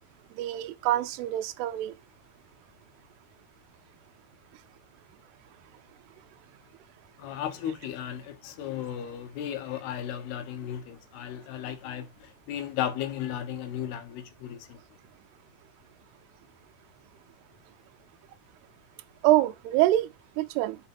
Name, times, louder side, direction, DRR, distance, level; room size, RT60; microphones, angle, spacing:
voice 1, 0.4-1.9 19.2-20.1 20.4-20.8, right 14 dB, 85° right, 2.7 m, -25 dB
voice 2, 7.2-14.8, left 10 dB, 80° left, 3.0 m, -35 dB
5.7 x 5.0 x 5.8 m
omnidirectional pair, 4.6 m